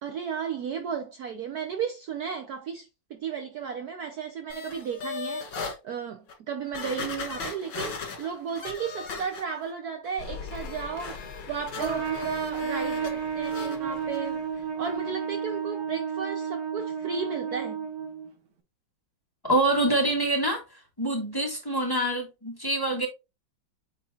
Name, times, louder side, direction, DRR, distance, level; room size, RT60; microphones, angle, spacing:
voice 1, 0.0-5.5 5.8-17.8, right 7 dB, 65° right, 1.1 m, -34 dB
sound 1, 4.5-5.8 6.3-6.4 6.7-9.7 10.0-13.1 13.4-13.8 14.1-14.2, left 5 dB, 75° left, 2.3 m, -38 dB
sound 2, 10.2-15.6, left 6 dB, 55° left, 1.7 m, -43 dB
Trumpet, 11.8-18.3, right 7 dB, 90° right, 2.3 m, -32 dB
voice 2, 19.4-23.1, right 1 dB, 10° left, 1.9 m, -26 dB
8.6 x 4.0 x 2.9 m
omnidirectional pair, 2.2 m